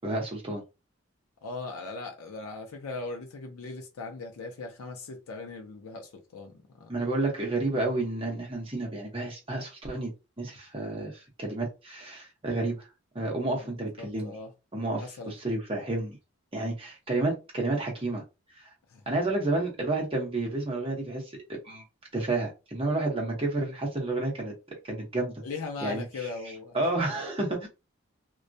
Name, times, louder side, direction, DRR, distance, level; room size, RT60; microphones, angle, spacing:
voice 1, 0.0-0.6 6.9-10.1 10.4-12.9 13.1-14.4 14.7-16.2 16.5-18.2 18.5-18.7 19.1-21.8 22.1-24.5 24.8-25.4 25.8-26.3 26.7-27.7, right 2 dB, 25° right, 0.7 m, -30 dB
voice 2, 1.4-6.9 13.6-14.5 15.0-15.3 18.9-19.0 19.4-19.5 25.4-26.9, left 3 dB, 85° left, 0.5 m, -39 dB
2.2 x 2.1 x 2.6 m
head